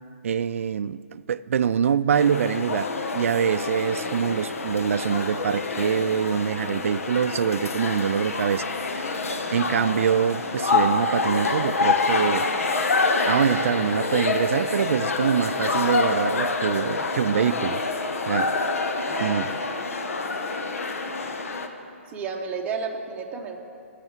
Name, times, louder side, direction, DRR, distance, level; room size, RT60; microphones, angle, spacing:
voice 1, 0.2-2.9 3.1-8.6 8.9-9.2 9.5-12.5 13.3-17.8 18.3-18.5 19.2-19.5, right 8 dB, 70° right, 16 dB, 0.4 m, -24 dB
sound 1, 2.1-21.7, left 4 dB, 80° left, 1.1 m, -27 dB
voice 2, 19.0-19.5 22.1-23.6, right 5 dB, 15° right, 0 dB, 1.1 m, -32 dB
15.5 x 6.6 x 7.4 m, 2.6 s
hypercardioid pair, 150°, 8 cm